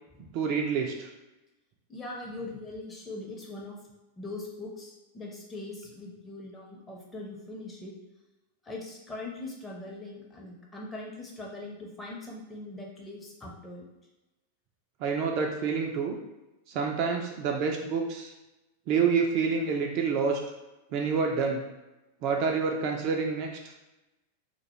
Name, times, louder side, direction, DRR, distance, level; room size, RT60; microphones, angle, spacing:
voice 1, 0.3-1.1 15.0-16.2 16.7-18.3 18.9-20.4 20.9-21.6 22.2-23.5, right 5 dB, 45° right, 1 dB, 0.3 m, -27 dB
voice 2, 1.9-3.8 4.2-7.9 8.6-13.9, left 2 dB, 15° left, -3 dB, 0.6 m, -41 dB
2.2 x 2.1 x 2.9 m, 1.0 s
figure-of-eight pair, 90°, 0 cm